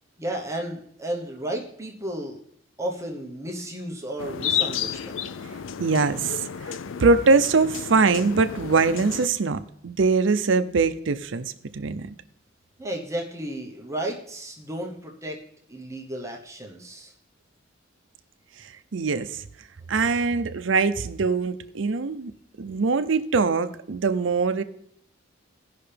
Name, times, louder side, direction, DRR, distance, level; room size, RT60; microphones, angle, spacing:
voice 1, 0.2-2.4 2.8-5.1 12.8-15.4 15.7-17.1, right 1 dB, 15° right, 0 dB, 1.0 m, -33 dB
sound 1, 4.2-9.3, left 8 dB, 75° left, 0.4 m, -32 dB
voice 2, 5.8-6.5 7.0-12.1 18.9-19.4 19.9-22.3 22.6-24.6, right 4 dB, 70° right, 11 dB, 0.6 m, -22 dB
17.0 x 5.6 x 3.4 m, 0.67 s
head